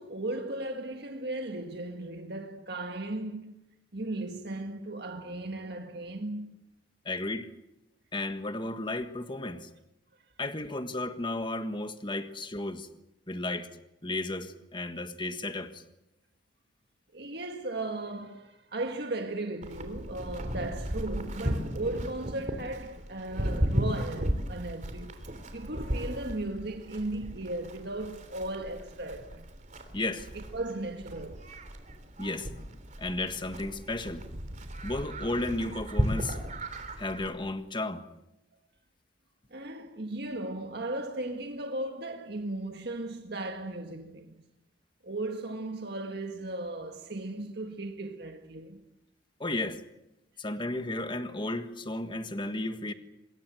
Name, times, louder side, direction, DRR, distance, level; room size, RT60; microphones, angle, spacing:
voice 1, 0.0-3.5 3.9-6.5 17.1-29.4 30.3-31.4 39.5-44.4 45.0-48.8, right 2 dB, 60° right, 1.8 m, -36 dB
voice 2, 7.0-7.5 8.1-9.7 10.4-12.9 13.3-13.7 14.0-15.8 29.9-30.3 32.2-32.5 33.0-34.2 34.8-36.4 37.0-38.0 49.4-49.8 50.4-52.9, left 2 dB, 25° left, 1.6 m, -33 dB
Livestock farm animals working animals, 19.6-37.3, equal, 40° right, 3.3 m, -35 dB
25.5 x 22.0 x 7.8 m
head